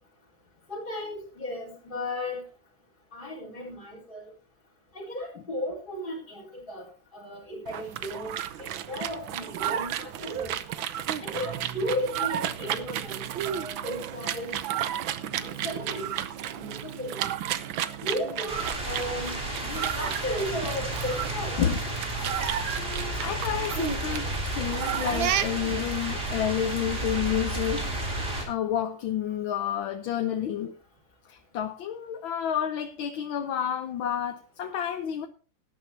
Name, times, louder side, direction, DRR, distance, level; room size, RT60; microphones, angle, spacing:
voice 1, 0.7-2.4 3.1-4.2 4.9-10.6 11.2-14.6 15.3-16.1 16.5-17.2 18.0-18.6 18.8-21.6, left 1 dB, 25° left, -4 dB, 4.4 m, -35 dB
sound 1, 7.7-25.8, right 10 dB, 85° right, 1.6 m, -33 dB
sound 2, 18.5-28.4, right 1 dB, 30° right, 3.3 m, -32 dB
voice 2, 22.8-24.3 24.5-27.9 28.5-30.7 31.3-35.3, left 9 dB, 90° left, 6 dB, 1.7 m, -30 dB
18.0 x 10.5 x 2.8 m, 0.37 s
omnidirectional pair, 2.1 m